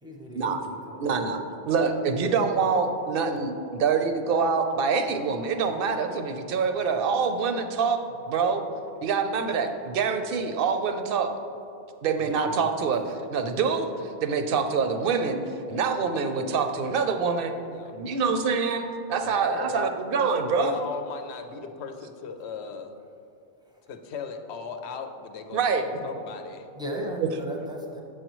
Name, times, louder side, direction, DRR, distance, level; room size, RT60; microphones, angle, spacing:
voice 1, 0.0-0.6 0.9-1.1 12.2-12.6 26.8-28.0, equal, 5° right, -1 dB, 0.6 m, -36 dB
voice 2, 1.0-1.4 1.7-8.0 8.3-8.6 9.0-11.3 12.0-13.9 14.2-15.4 15.7-17.5 17.9-20.8 25.5-25.8 27.2-27.3, right 5 dB, 65° right, 7 dB, 0.7 m, -25 dB
voice 3, 19.2-19.9 20.4-22.9 23.9-26.7, left 5 dB, 80° left, 6 dB, 0.9 m, -37 dB
7.4 x 6.4 x 3.0 m, 2.8 s
omnidirectional pair, 1.1 m